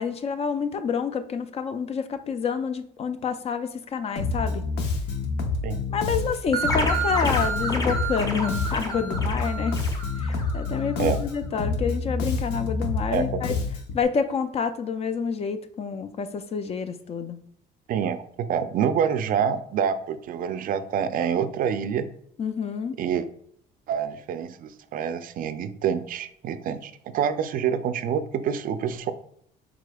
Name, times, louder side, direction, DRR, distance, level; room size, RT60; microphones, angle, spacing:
voice 1, 0.0-4.6 5.9-9.8 10.2-13.5 13.9-17.4 22.4-23.0, left 6 dB, 40° left, 9 dB, 0.4 m, -28 dB
Bass guitar, 4.2-14.0, left 4 dB, 85° left, 0.8 m, -28 dB
sound 1, 6.5-10.9, right 2 dB, 20° left, 0.8 m, -29 dB
voice 2, 13.1-13.4 17.9-22.1 23.0-23.3 23.9-29.1, right 8 dB, 55° right, 11 dB, 0.4 m, -27 dB
4.9 x 3.7 x 2.3 m, 0.69 s
cardioid pair, 110°, 17 cm